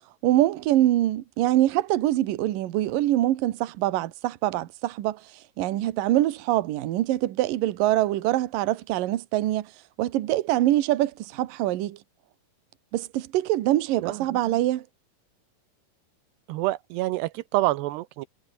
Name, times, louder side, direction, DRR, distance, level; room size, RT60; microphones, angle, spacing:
voice 1, 0.2-5.2 5.6-9.7 10.0-12.0 12.9-14.8, right 14 dB, 65° right, 2.7 m, -24 dB
voice 2, 16.5-18.3, right 17 dB, 85° right, 2.9 m, -27 dB
omnidirectional pair, 4.8 m